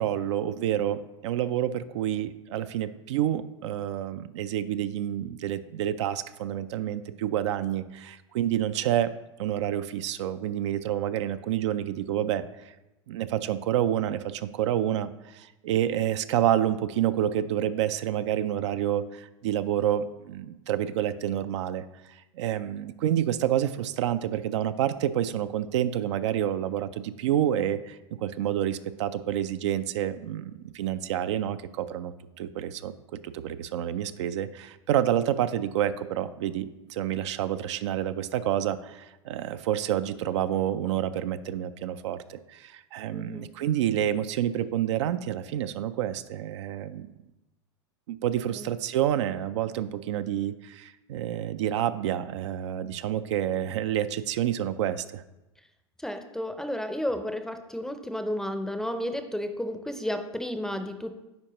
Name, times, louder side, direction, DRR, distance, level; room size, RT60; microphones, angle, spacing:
voice 1, 0.0-9.1 9.4-12.7 13.1-32.9 33.2-47.1 48.1-55.2, right 11 dB, 70° right, 12 dB, 0.4 m, -28 dB
voice 2, 43.1-43.5 48.5-48.7 56.0-61.2, left 1 dB, 5° left, 7 dB, 0.5 m, -32 dB
9.5 x 4.4 x 3.0 m, 0.98 s
hypercardioid pair, 105°, 15 cm